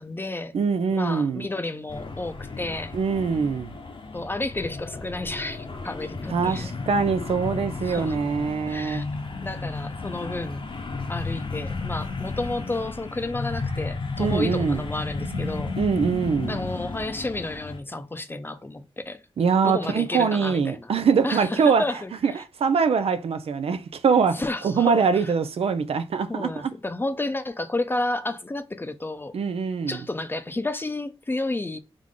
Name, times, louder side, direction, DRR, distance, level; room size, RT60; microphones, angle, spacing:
voice 1, 0.0-0.5 0.9-2.9 4.1-6.7 7.9-8.2 8.7-9.1 9.4-10.7 11.1-15.8 16.5-19.2 19.6-20.9 21.2-22.4 24.2-25.3 26.3-29.3 29.9-31.8, left 2 dB, 20° left, 0.5 m, -31 dB
voice 2, 0.5-1.5 2.9-3.7 6.3-9.0 14.2-14.8 15.8-16.7 19.4-21.8 22.2-26.7 29.3-30.0, right 5 dB, 75° right, 0.5 m, -23 dB
sound 1, 1.9-17.8, left 3 dB, 55° left, 0.8 m, -33 dB
3.7 x 3.1 x 3.7 m
cardioid pair, 75°, 10 cm